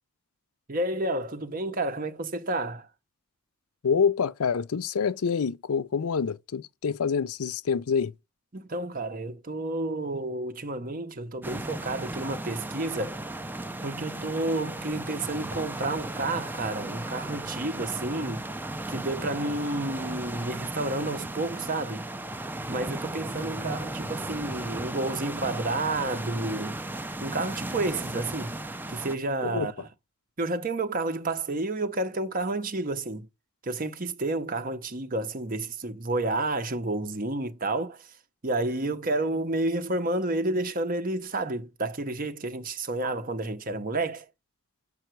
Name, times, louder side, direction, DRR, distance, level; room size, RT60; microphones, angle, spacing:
voice 1, 0.7-2.9 8.5-13.2 13.8-18.5 18.9-22.1 22.7-26.8 27.2-28.5 28.9-29.9 30.4-33.3 33.6-38.1 38.4-44.3, right 2 dB, 40° right, 0.8 m, -30 dB
voice 2, 3.8-8.1 29.4-29.7, left 6 dB, 75° left, 0.5 m, -26 dB
sound 1, 11.4-29.2, right 1 dB, 10° right, 0.4 m, -36 dB
7.7 x 5.3 x 4.6 m
head